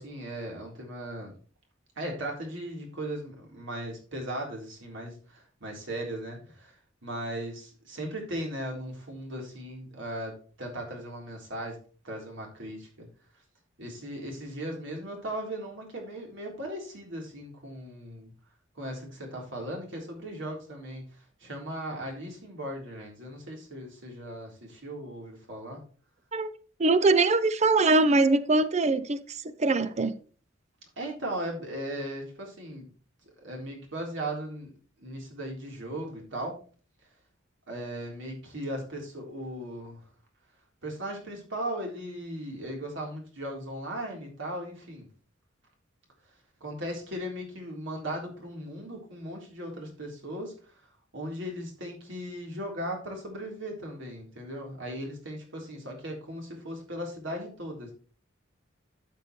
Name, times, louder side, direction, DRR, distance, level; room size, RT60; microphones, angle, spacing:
voice 1, 0.0-1.3 2.0-11.8 12.0-13.1 13.8-18.3 18.8-25.8 31.0-32.9 33.2-34.7 35.0-36.6 37.7-40.0 40.8-45.1 46.6-50.8 51.1-57.9, right 1 dB, 70° right, 3.7 m, -37 dB
voice 2, 26.8-30.1, right 3 dB, 35° right, 0.6 m, -23 dB
12.0 x 6.7 x 3.1 m
head